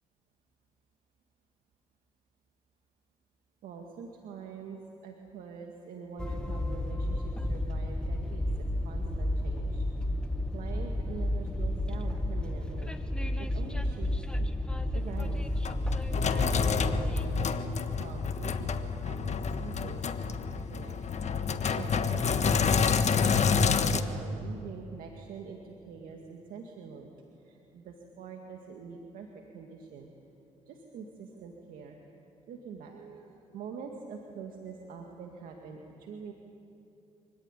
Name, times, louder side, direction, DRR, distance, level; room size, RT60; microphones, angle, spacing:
voice 1, 3.6-9.9 10.5-12.9 13.4-14.5 14.9-15.5 16.3-21.0 21.7-23.1 23.6-27.1 27.4-30.1 30.7-32.0 32.5-36.3, right 6 dB, 80° right, 2 dB, 2.1 m, -45 dB
Train, 6.2-17.5, left 1 dB, 5° left, 1.7 m, -32 dB
Sink (filling or washing), 15.2-24.0, left 6 dB, 55° left, 1.4 m, -28 dB
26.0 x 17.0 x 9.9 m, 2.7 s
supercardioid pair, 60°, 14 cm